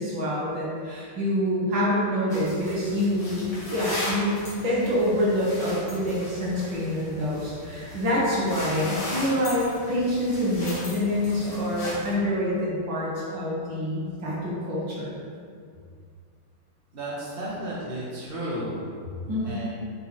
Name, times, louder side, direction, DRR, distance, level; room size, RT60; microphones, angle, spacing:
voice 1, 0.0-3.5 3.7-15.2 19.3-19.6, left 1 dB, 65° right, -7 dB, 2.4 m, -26 dB
sound 1, 2.3-12.2, left 1 dB, 75° left, 3.0 m, -37 dB
voice 2, 16.9-18.8 19.4-19.7, right 1 dB, 25° right, -8 dB, 2.0 m, -33 dB
9.2 x 4.4 x 4.5 m, 2.2 s
omnidirectional pair, 2.3 m